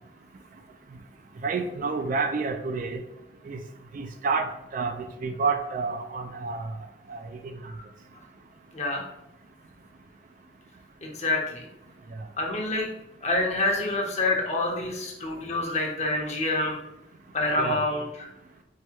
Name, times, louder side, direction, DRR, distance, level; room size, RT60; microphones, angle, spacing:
voice 1, 1.4-3.0 3.5-3.6 3.9-6.7 7.1-7.5 17.6-17.8, right 4 dB, 45° right, 7 dB, 0.4 m, -29 dB
voice 2, 8.7-9.0 11.0-11.7 12.4-12.9 13.2-16.8 17.3-18.3, left 2 dB, 40° left, 0 dB, 0.9 m, -27 dB
4.7 x 2.2 x 4.4 m, 0.87 s
head